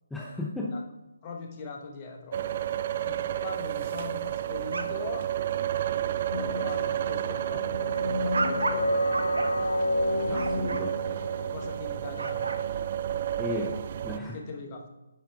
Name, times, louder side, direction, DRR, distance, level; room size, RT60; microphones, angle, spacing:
voice 1, 0.1-0.8 10.3-11.2 13.4-14.4, left 2 dB, 5° left, -4 dB, 0.6 m, -35 dB
voice 2, 1.2-2.5 3.0-5.3 6.3-9.7 11.5-12.9 14.3-14.9, left 4 dB, 30° left, 2 dB, 1.1 m, -41 dB
sound 1, 2.3-14.2, right 11 dB, 40° right, 0.3 m, -31 dB
sound 2, 4.5-5.3 5.7-5.9 6.3-6.6 7.1-10.8 12.0-12.6, right 3 dB, 75° right, 0.8 m, -34 dB
sound 3, 6.3-11.7, left 3 dB, 85° left, 0.5 m, -31 dB
9.7 x 4.4 x 3.5 m, 0.99 s
figure-of-eight pair, 150°, 0 cm